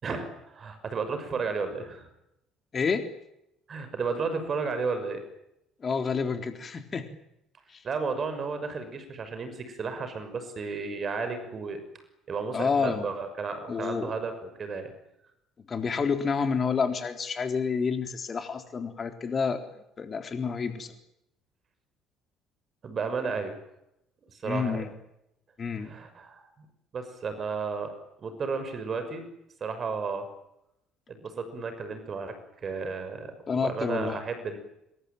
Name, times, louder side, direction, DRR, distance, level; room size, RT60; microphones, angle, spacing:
voice 1, 0.0-2.1 3.7-5.2 7.8-11.8 12.3-14.9 22.8-23.6 24.4-24.8 25.8-26.7 26.9-27.9 28.2-29.2 29.6-30.3 31.1-32.4 32.6-33.3 33.6-34.6, right 4 dB, 40° right, 9 dB, 6.2 m, -33 dB
voice 2, 2.7-3.1 5.8-7.1 7.7-7.8 12.5-13.1 13.7-14.1 15.7-19.7 20.0-20.9 24.4-24.9 25.6-25.9 33.5-34.2, left 5 dB, 35° left, 7 dB, 3.8 m, -29 dB
25.5 x 23.0 x 9.1 m, 0.81 s
figure-of-eight pair, 50°, 0 cm